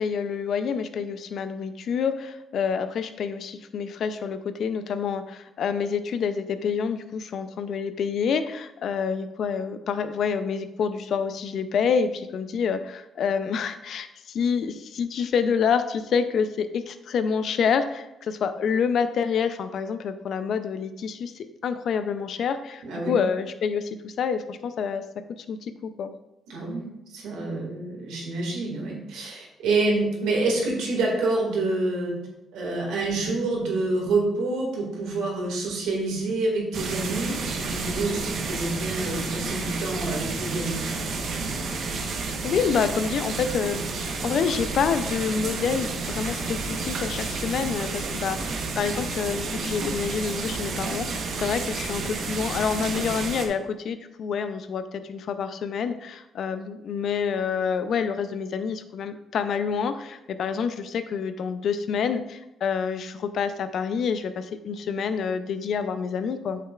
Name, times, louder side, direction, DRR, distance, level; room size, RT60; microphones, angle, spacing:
voice 1, 0.0-25.0 25.5-26.1 42.4-66.6, left 6 dB, 65° left, 10 dB, 0.5 m, -27 dB
voice 2, 22.8-23.2 26.5-32.2 32.5-40.9, right 2 dB, 90° right, -1 dB, 2.1 m, -27 dB
sound 1, 36.7-53.5, right 3 dB, 70° right, 1.1 m, -30 dB
8.5 x 6.8 x 2.5 m, 0.92 s
cardioid pair, 90°, 0 cm